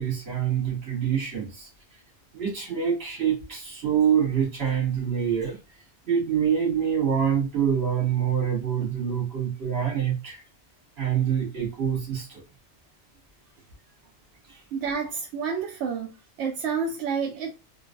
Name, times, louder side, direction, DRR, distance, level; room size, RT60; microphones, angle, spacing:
voice 1, 0.0-1.7 2.3-5.6 6.1-10.4 11.0-12.4 14.5-14.6, right 8 dB, 65° right, 1.5 m, -26 dB
voice 2, 14.7-16.1 16.4-17.5, right 6 dB, 90° right, 0.9 m, -29 dB
3.1 x 2.4 x 2.5 m
omnidirectional pair, 1.1 m